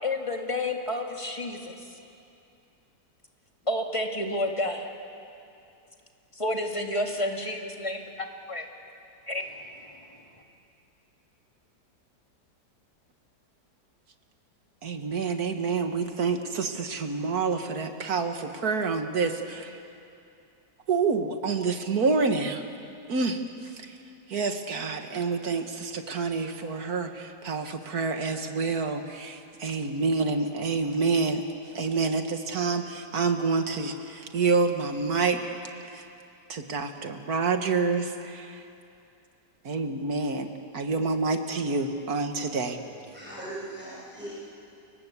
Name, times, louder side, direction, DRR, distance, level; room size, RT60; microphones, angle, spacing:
voice 1, 0.0-1.8 3.7-4.9 6.3-8.7 9.3-9.7, left 1 dB, 20° left, 2 dB, 2.1 m, -30 dB
voice 2, 14.8-19.8 20.9-22.6 23.1-24.0 24.3-31.4 31.7-35.4 35.9-36.0 36.5-38.7 39.6-42.8, right 4 dB, 60° right, 6 dB, 2.0 m, -28 dB
voice 3, 42.6-44.3, right 1 dB, 5° right, -8 dB, 7.4 m, -40 dB
29.5 x 23.0 x 8.3 m, 2.6 s
omnidirectional pair, 1.8 m